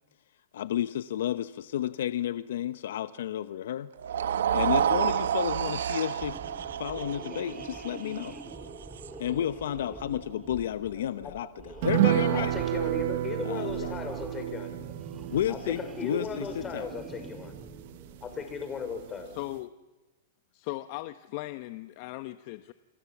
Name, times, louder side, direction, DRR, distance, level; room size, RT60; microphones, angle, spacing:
voice 1, 0.5-3.9 4.5-6.4 6.8-8.4 9.2-11.5 11.8-12.5 13.4-13.9 15.3-16.9, left 11 dB, 75° left, 13 dB, 0.9 m, -31 dB
sound 1, 4.0-10.2, right 9 dB, 85° right, 1.3 m, -30 dB
sound 2, 6.1-18.6, right 3 dB, 10° right, 3.0 m, -46 dB
voice 2, 11.0-11.3 12.3-14.8 15.5-17.5 18.2-19.3, left 6 dB, 20° left, 7 dB, 5.3 m, -37 dB
sound 3, 11.8-18.6 18.9-19.0 19.4-19.5, right 14 dB, 60° right, 1.1 m, -31 dB
voice 3, 19.3-19.7 20.5-22.7, left 18 dB, 50° left, 11 dB, 1.0 m, -38 dB
29.0 x 27.5 x 7.3 m, 1.1 s
hypercardioid pair, 135°, 0 cm